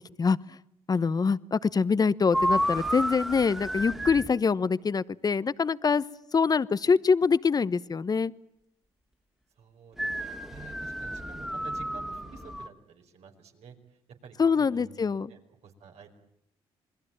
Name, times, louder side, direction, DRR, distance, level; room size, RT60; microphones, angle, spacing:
voice 1, 0.9-6.0 6.3-8.3 14.4-15.3, left 5 dB, 35° left, 17 dB, 1.0 m, -24 dB
sound 1, 2.3-4.3 10.0-12.7, equal, 5° right, 2.2 m, -31 dB
voice 2, 9.6-13.7 14.2-16.1, right 6 dB, 70° right, 4 dB, 5.0 m, -50 dB
28.0 x 21.5 x 8.9 m, 0.74 s
supercardioid pair, 70°, 11 cm